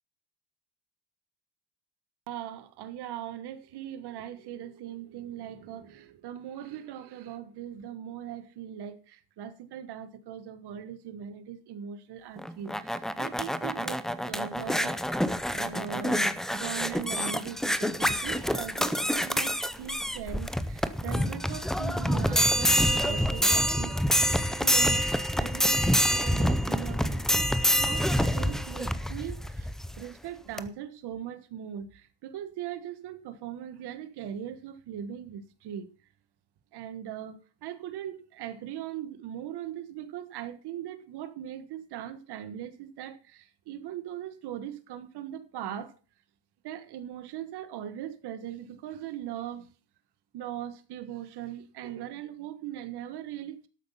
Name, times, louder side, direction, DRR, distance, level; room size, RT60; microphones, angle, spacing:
voice 1, 2.3-15.0 15.5-24.3 24.6-27.5 27.8-29.7 30.0-35.9 36.7-45.9 46.6-49.7 50.3-53.7, right 10 dB, 65° right, 1.5 m, -40 dB
sound 1, 12.4-30.0 30.6-30.7, equal, ahead, 0.5 m, -27 dB
13.0 x 8.2 x 5.6 m
cardioid pair, 155°, 43 cm